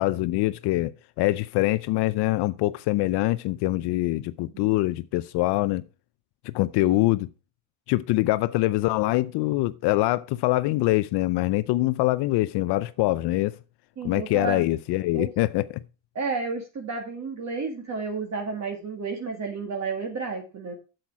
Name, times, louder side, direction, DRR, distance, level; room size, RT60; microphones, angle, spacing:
voice 1, 0.0-5.8 6.4-7.3 7.9-13.5 14.0-15.7, left 18 dB, 55° left, 0.6 m, -24 dB
voice 2, 14.0-14.7 15.1-15.3 16.2-20.7, right 4 dB, 35° right, 1.9 m, -32 dB
8.4 x 7.9 x 4.7 m
cardioid pair, 125°, 48 cm